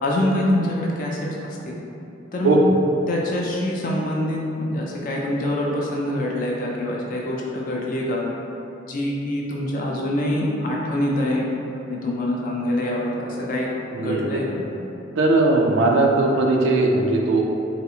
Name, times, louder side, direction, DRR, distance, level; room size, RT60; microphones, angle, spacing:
voice 1, 0.0-1.2 1.7-1.8 2.3-2.6 3.1-8.2 8.9-11.6 11.9-13.7 14.0-14.6, left 1 dB, 45° left, -3 dB, 0.4 m, -25 dB
voice 2, 13.9-14.4 15.2-17.4, right 2 dB, 70° right, 0 dB, 0.3 m, -19 dB
4.0 x 2.0 x 2.7 m, 2.7 s
head